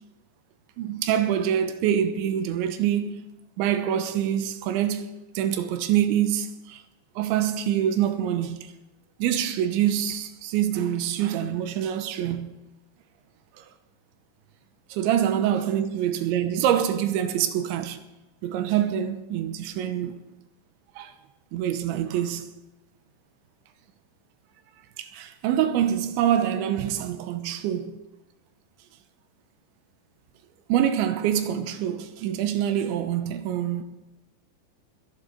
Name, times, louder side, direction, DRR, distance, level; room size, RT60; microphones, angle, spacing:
voice 1, 0.8-3.2 3.6-5.1 5.4-6.8 7.2-8.7 9.2-12.5 13.6-13.7 14.9-18.0 18.4-20.2 21.0-21.1 21.5-22.5 25.0-28.0 30.7-33.8, right 10 dB, 85° right, 3.2 m, -25 dB
22.0 x 11.0 x 3.9 m
omnidirectional pair, 5.3 m